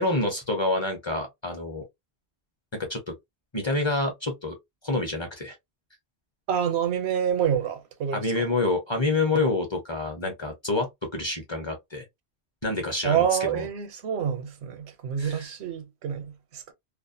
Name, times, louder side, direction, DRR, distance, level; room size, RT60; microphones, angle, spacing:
voice 1, 0.0-1.8 2.7-3.1 3.5-4.5 4.8-5.5 8.1-12.0 12.6-13.7 15.2-15.5, left 2 dB, 30° left, 0.6 m, -27 dB
voice 2, 6.5-8.5 13.0-16.7, right 8 dB, 85° right, 0.9 m, -27 dB
2.5 x 2.1 x 2.6 m
omnidirectional pair, 1.1 m